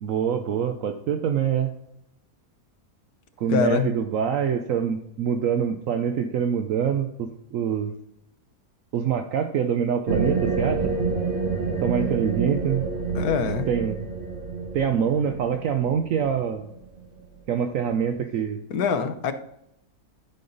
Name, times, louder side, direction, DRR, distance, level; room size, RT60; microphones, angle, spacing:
voice 1, 0.0-1.7 3.4-7.9 8.9-10.9 11.8-12.9 13.7-14.0 14.7-16.7 17.5-18.6, right 8 dB, 65° right, 6 dB, 1.0 m, -25 dB
voice 2, 3.5-3.9 13.1-13.7 18.7-19.3, left 6 dB, 80° left, 7 dB, 1.3 m, -24 dB
sound 1, 10.1-17.3, right 4 dB, 40° right, 1.3 m, -28 dB
11.5 x 5.5 x 3.9 m, 0.78 s
omnidirectional pair, 1.6 m